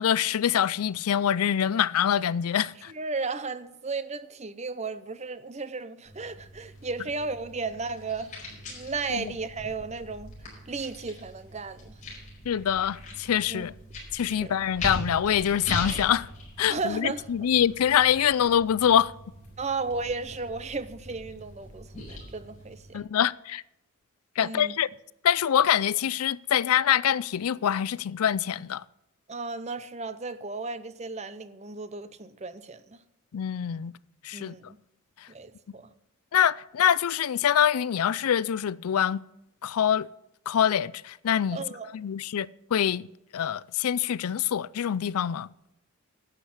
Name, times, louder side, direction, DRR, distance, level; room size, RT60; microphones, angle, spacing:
voice 1, 0.0-2.9 9.1-9.3 12.5-13.7 14.1-16.3 16.6-19.1 22.9-23.6 24.4-24.9 25.2-28.8 33.3-33.9 34.2-34.7 36.3-39.2 39.6-40.1 40.5-41.6 41.9-43.1 43.3-45.5, left 9 dB, 80° left, 0.4 m, -25 dB
voice 2, 2.9-8.3 8.7-10.3 10.7-12.0 13.5-13.7 14.3-14.6 16.7-17.3 19.6-23.0 24.4-24.7 29.3-33.0 34.3-34.8 35.3-35.9 41.5-41.9, right 4 dB, 30° right, 0.6 m, -34 dB
sound 1, 6.0-23.0, left 1 dB, 35° left, 4.8 m, -41 dB
12.0 x 8.2 x 7.0 m
head